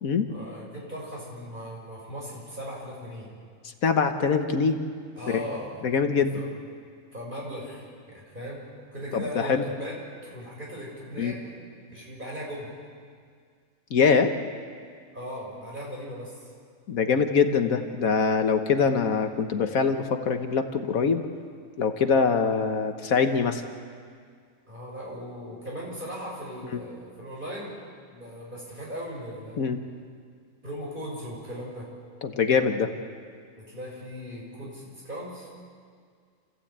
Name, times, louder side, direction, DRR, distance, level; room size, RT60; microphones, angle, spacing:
voice 1, 0.3-3.3 5.2-5.8 6.1-6.5 7.1-8.6 8.9-11.4 11.9-12.7 15.1-16.5 24.7-27.7 28.1-29.7 30.6-31.9 33.6-35.5, equal, 35° right, -3 dB, 6.5 m, -38 dB
voice 2, 3.8-4.8 5.3-5.4 5.8-6.4 9.1-9.6 11.2-11.3 13.9-14.3 16.9-21.2 21.8-23.6 29.6-29.8 32.2-32.9, left 5 dB, 75° left, 7 dB, 1.6 m, -23 dB
28.5 x 15.0 x 8.8 m, 2.1 s
omnidirectional pair, 1.5 m